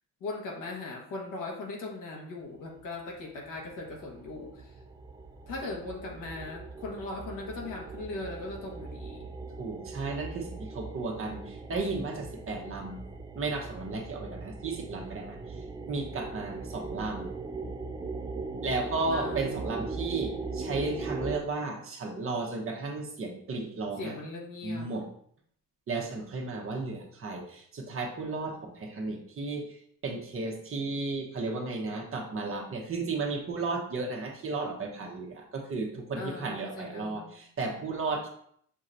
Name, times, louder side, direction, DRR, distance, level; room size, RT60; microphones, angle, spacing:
voice 1, 0.2-4.7 5.5-9.4 19.1-19.7 24.0-24.9 36.1-37.4, left 3 dB, 75° left, 0 dB, 1.4 m, -39 dB
sound 1, 2.8-2.9 3.1-21.4, right 3 dB, 15° right, 0.3 m, -40 dB
voice 2, 9.6-13.0 13.3-15.6 15.9-17.3 18.6-24.2 24.6-25.1 25.9-29.8 30.0-38.3, right 3 dB, 40° right, 1 dB, 1.1 m, -34 dB
6.4 x 3.0 x 2.6 m, 0.65 s
cardioid pair, 100°, 32 cm